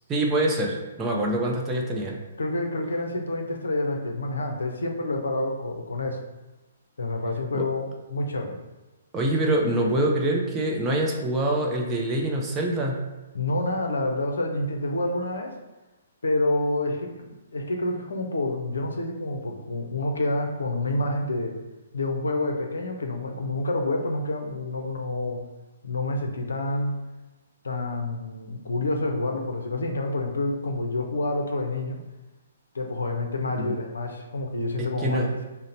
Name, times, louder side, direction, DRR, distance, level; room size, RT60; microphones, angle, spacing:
voice 1, 0.1-2.2 7.6-7.7 9.1-13.0 33.6-33.7 34.8-35.3, right 1 dB, 15° right, -1 dB, 0.6 m, -25 dB
voice 2, 2.4-6.2 7.0-8.6 13.3-15.6 16.2-21.6 21.9-25.4 25.8-26.9 27.6-32.0 32.7-35.4, left 2 dB, 70° left, 3 dB, 0.6 m, -28 dB
3.8 x 2.1 x 4.2 m, 1.1 s
figure-of-eight pair, 125°, 0 cm